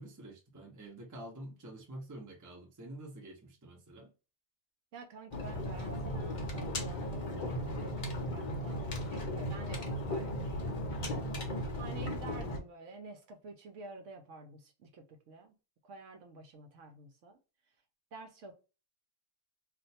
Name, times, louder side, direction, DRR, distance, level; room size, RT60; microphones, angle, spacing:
voice 1, 0.0-4.1 11.1-11.4, right 1 dB, 25° right, 0.4 m, -48 dB
voice 2, 4.9-10.9 11.8-15.5 15.8-17.4 18.1-18.5, right 3 dB, 65° right, 0.9 m, -50 dB
sound 1, 5.3-12.6, left 1 dB, 45° left, 0.6 m, -36 dB
2.5 x 2.2 x 4.0 m
omnidirectional pair, 1.5 m